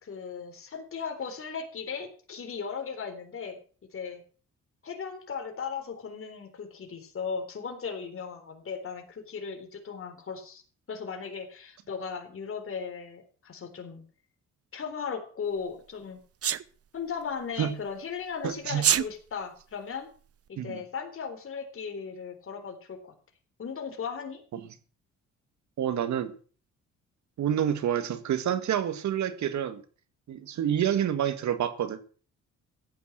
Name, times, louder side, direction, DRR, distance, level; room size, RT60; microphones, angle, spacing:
voice 1, 0.0-3.6 3.9-4.2 4.8-10.6 10.9-14.0 14.7-16.2 16.9-20.1 20.5-23.1 23.6-24.4, left 6 dB, 45° left, 3.9 m, -37 dB
Sneeze, 16.4-16.6 18.7-19.1, right 10 dB, 50° right, 0.9 m, -23 dB
voice 2, 18.4-18.8 20.6-20.8 25.8-26.3 27.4-29.8 30.3-32.0, right 10 dB, 70° right, 1.9 m, -28 dB
14.0 x 9.3 x 7.6 m
cardioid pair, 90°, 30 cm